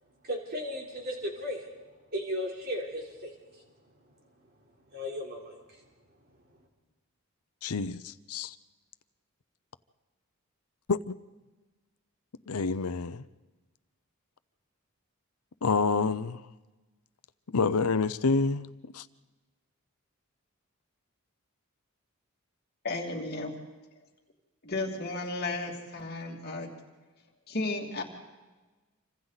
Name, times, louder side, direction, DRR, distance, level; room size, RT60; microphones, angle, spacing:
voice 1, 0.2-1.7 2.1-3.3 4.9-5.6, equal, 45° right, 3.8 m, -35 dB
voice 2, 7.6-8.5 10.9-11.1 12.5-13.2 15.6-16.4 17.5-18.7 18.9-19.1, left 4 dB, 85° left, 0.7 m, -28 dB
voice 3, 22.8-23.5 24.6-26.7 27.5-28.0, left 2 dB, 45° left, 2.7 m, -33 dB
28.0 x 25.0 x 4.1 m
head